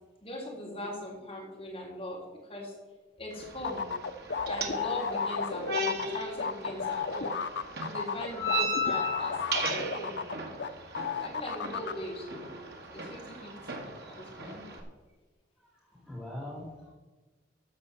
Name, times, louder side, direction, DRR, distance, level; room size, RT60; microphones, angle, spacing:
voice 1, 0.2-2.7 3.2-3.9 4.4-7.4 7.8-10.2 11.2-12.5 12.9-13.8 14.1-14.7, left 1 dB, 30° left, -3 dB, 3.6 m, -40 dB
sound 1, 3.3-14.8, equal, 60° right, 1.7 m, -36 dB
sound 2, 3.6-10.7 11.0-11.9, left 5 dB, 65° left, 0.7 m, -33 dB
voice 2, 14.4-14.9 15.9-16.9, left 1 dB, 5° right, -5 dB, 4.0 m, -43 dB
13.5 x 5.2 x 6.8 m, 1.2 s
head